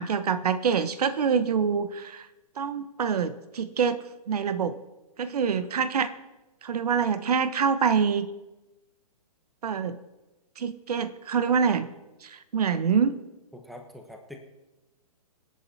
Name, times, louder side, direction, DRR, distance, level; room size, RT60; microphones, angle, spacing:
voice 1, 0.0-2.3 2.6-4.8 5.2-6.1 6.6-8.3 9.6-10.0 10.6-11.9 12.2-13.2, right 6 dB, 75° right, 13 dB, 1.2 m, -26 dB
voice 2, 13.5-14.4, left 1 dB, ahead, 4 dB, 1.1 m, -44 dB
26.0 x 8.7 x 4.2 m, 1.1 s
hypercardioid pair, 145°, 20 cm